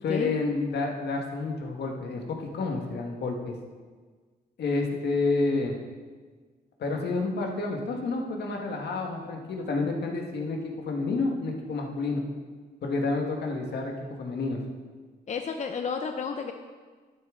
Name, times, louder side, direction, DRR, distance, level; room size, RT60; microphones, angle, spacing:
voice 1, 0.0-3.6 4.6-5.8 6.8-12.2 12.8-14.6, left 3 dB, 75° left, 1 dB, 1.7 m, -29 dB
voice 2, 15.3-16.5, left 5 dB, 45° left, 5 dB, 0.6 m, -31 dB
12.0 x 9.3 x 3.8 m, 1.5 s
cardioid pair, 120°, 17 cm